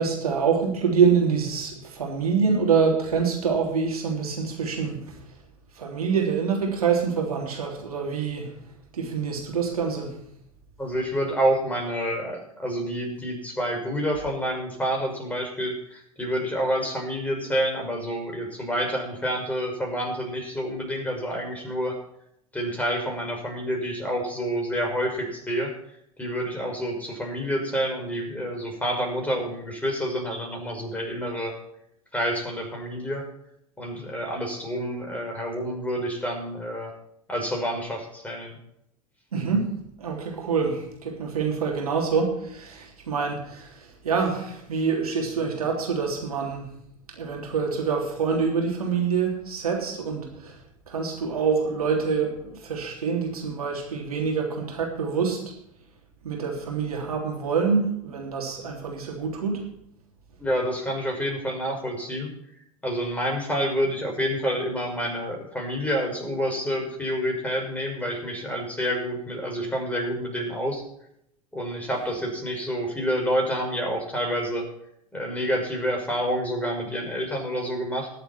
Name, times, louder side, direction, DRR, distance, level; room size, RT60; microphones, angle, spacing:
voice 1, 0.0-5.2 5.8-8.5 8.9-10.1 39.3-46.7 47.1-50.6 50.9-55.4 56.2-59.7, right 5 dB, 85° right, 0 dB, 3.5 m, -26 dB
voice 2, 10.8-22.0 22.5-25.7 26.2-31.5 32.1-33.2 33.8-36.9 37.3-38.6 60.4-62.3 62.8-70.8 71.5-74.6 75.1-78.1, equal, 10° left, 0 dB, 5.8 m, -28 dB
20.5 x 8.0 x 4.5 m, 0.75 s
hypercardioid pair, 85°, 18 cm